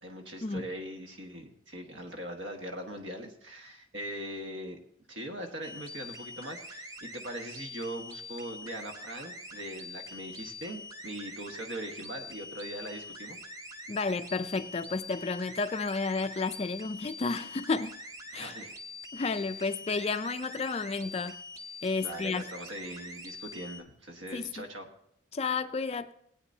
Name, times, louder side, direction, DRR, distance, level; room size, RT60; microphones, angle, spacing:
voice 1, 0.0-4.8 5.1-13.4 18.3-18.8 22.0-24.9, right 1 dB, 65° right, 1.5 m, -41 dB
sound 1, 5.6-23.8, left 1 dB, 20° right, 0.7 m, -45 dB
voice 2, 13.9-18.0 18.3-18.5 19.1-21.4 21.8-22.4 24.3-24.7 25.3-26.1, left 4 dB, 30° left, 0.4 m, -32 dB
18.5 x 9.0 x 2.7 m
head